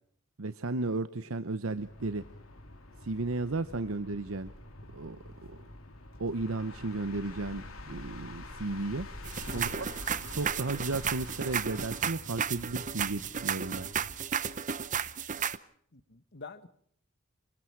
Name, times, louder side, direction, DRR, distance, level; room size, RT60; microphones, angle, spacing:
voice 1, 0.4-2.2 3.0-4.5 4.9-5.2 5.5-5.6 6.2-9.1 9.5-9.9 10.3-13.9, right 3 dB, 80° right, 0.9 m, -34 dB
sound 1, 1.7-14.4, left 2 dB, 90° left, 3.0 m, -46 dB
sound 2, 9.2-15.6, right 7 dB, 40° right, 0.8 m, -34 dB
voice 2, 9.5-10.1 15.4-15.5 15.9-16.7, left 4 dB, 55° left, 1.5 m, -49 dB
27.0 x 23.5 x 4.7 m
head